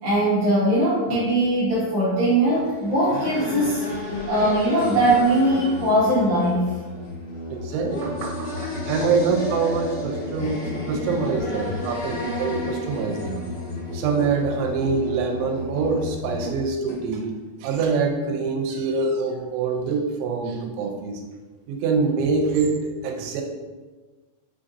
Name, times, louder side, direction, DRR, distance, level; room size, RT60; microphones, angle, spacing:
voice 1, 0.0-3.8 4.3-6.6, right 1 dB, 70° right, -10 dB, 2.3 m, -20 dB
Musical instrument, 2.4-17.1, left 2 dB, 75° left, 2.0 m, -35 dB
sound 1, 2.6-14.5, left 1 dB, 60° left, 2.0 m, -34 dB
voice 2, 7.5-13.4 13.9-17.3 17.6-21.2 21.7-23.4, right 4 dB, 90° right, 2 dB, 3.0 m, -25 dB
7.0 x 2.5 x 2.6 m, 1.3 s
omnidirectional pair, 5.2 m